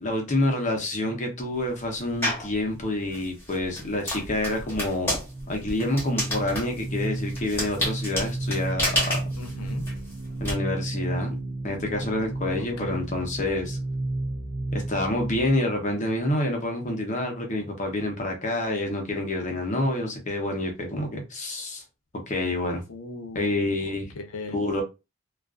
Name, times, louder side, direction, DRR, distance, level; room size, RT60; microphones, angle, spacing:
voice 1, 0.0-5.2 5.5-9.2 10.4-13.8 14.7-21.8 22.3-22.8 23.3-24.0 24.5-24.8, left 1 dB, 35° left, 0.6 m, -28 dB
sound 1, 2.2-2.5 3.1-10.5, left 1 dB, 10° left, 1.0 m, -30 dB
sound 2, 4.5-15.5, right 2 dB, 60° right, 0.6 m, -33 dB
voice 2, 9.4-9.8 12.8-13.0 22.9-23.8 24.1-24.6, left 3 dB, 80° left, 0.5 m, -37 dB
2.4 x 2.3 x 2.3 m
head